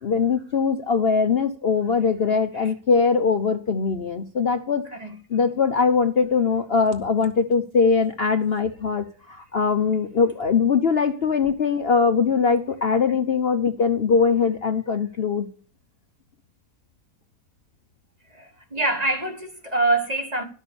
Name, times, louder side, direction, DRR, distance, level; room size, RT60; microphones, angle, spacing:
voice 1, 0.0-4.8 5.3-15.5, left 5 dB, 50° left, 0.9 m, -21 dB
voice 2, 18.3-20.4, right 2 dB, 25° right, 1.4 m, -25 dB
11.5 x 6.5 x 6.9 m
omnidirectional pair, 1.7 m